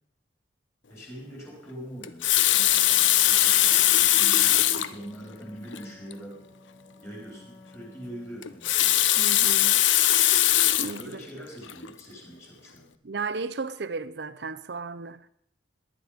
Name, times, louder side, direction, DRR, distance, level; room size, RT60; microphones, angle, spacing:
voice 1, 0.9-6.4 7.0-9.1 11.0-12.9, equal, 15° left, 4.4 m, -43 dB
Water tap faucet, 2.0-4.9 5.7-5.8 6.1-6.2 8.4-11.0 11.7-11.9, left 13 dB, 80° left, 0.7 m, -21 dB
Wind instrument woodwind instrument, 2.5-8.6, left 2 dB, 45° left, 6.6 m, -52 dB
voice 2, 9.2-9.8 10.8-11.2 13.0-15.2, right 4 dB, 60° right, 0.7 m, -34 dB
18.5 x 11.0 x 5.1 m
head